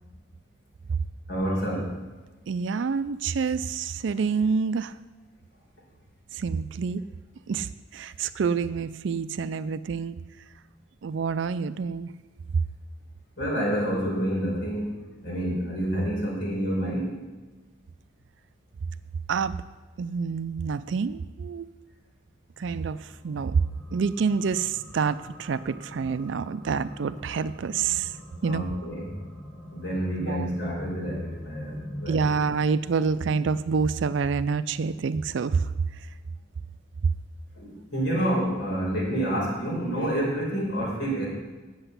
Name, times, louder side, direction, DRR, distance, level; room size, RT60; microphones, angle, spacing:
voice 1, 1.3-2.0 13.4-15.0 15.2-17.2 28.4-29.1 29.7-32.2 37.6-41.3, right 1 dB, 60° left, -5 dB, 4.5 m, -28 dB
voice 2, 2.5-4.9 6.3-7.0 7.5-10.2 11.0-12.1 19.3-19.6 20.0-21.7 22.6-23.0 23.2-23.6 23.9-28.1 28.4-28.6 30.2-30.5 32.1-35.7, right 5 dB, 70° right, 14 dB, 0.4 m, -27 dB
sound 1, 22.5-32.5, equal, 20° right, 2.8 m, -44 dB
8.0 x 7.9 x 8.0 m, 1.2 s
head